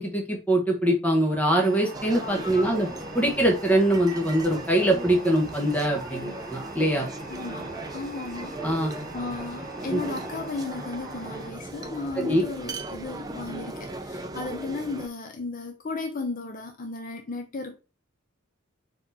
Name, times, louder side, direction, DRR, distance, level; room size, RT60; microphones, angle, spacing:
voice 1, 0.0-2.9 3.1-7.1 8.6-8.9 9.9-10.0 12.2-12.4, right 1 dB, 10° left, 1.1 m, -23 dB
sound 1, 1.6-11.5, right 2 dB, 50° right, 1.2 m, -42 dB
sound 2, 1.9-15.1, right 2 dB, 20° right, 0.5 m, -38 dB
voice 2, 2.2-2.9 7.3-17.8, left 3 dB, 40° left, 0.5 m, -35 dB
4.3 x 2.9 x 4.0 m
head